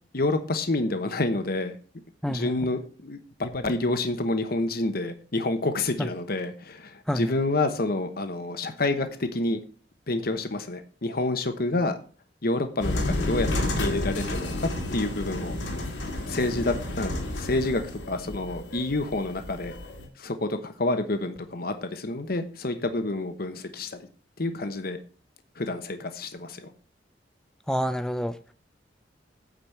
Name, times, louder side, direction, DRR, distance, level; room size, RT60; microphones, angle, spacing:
voice 1, 0.1-1.8 2.3-9.6 10.1-12.0 12.4-15.6 16.2-19.7 20.2-24.0 24.4-25.0 25.6-26.7, left 2 dB, 55° left, 1.0 m, -28 dB
voice 2, 2.2-2.5 7.1-7.3 27.7-28.3, equal, 5° left, 0.6 m, -27 dB
sound 1, 12.8-20.1, left 1 dB, 80° left, 2.1 m, -31 dB
9.1 x 5.0 x 7.2 m
head